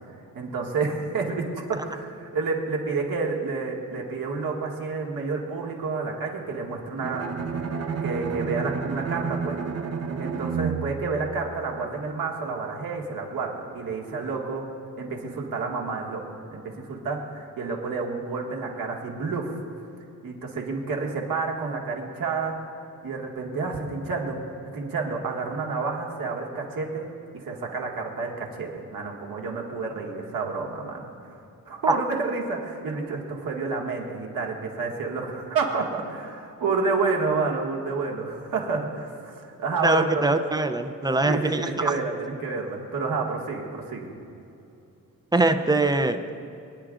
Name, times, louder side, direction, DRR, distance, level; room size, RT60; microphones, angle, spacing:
voice 1, 0.3-7.3 8.0-9.6 10.2-14.6 15.0-16.2 16.5-19.6 20.2-22.6 23.0-24.4 24.7-31.4 31.7-40.3 41.2-44.1, right 4 dB, 75° right, -1 dB, 1.9 m, -29 dB
Bowed string instrument, 7.0-12.0, right 5 dB, 45° right, 0.8 m, -31 dB
voice 2, 39.8-41.9 45.3-46.2, right 2 dB, 10° right, 8 dB, 0.5 m, -22 dB
23.0 x 10.5 x 2.5 m, 2.6 s
wide cardioid pair, 140°, 34 cm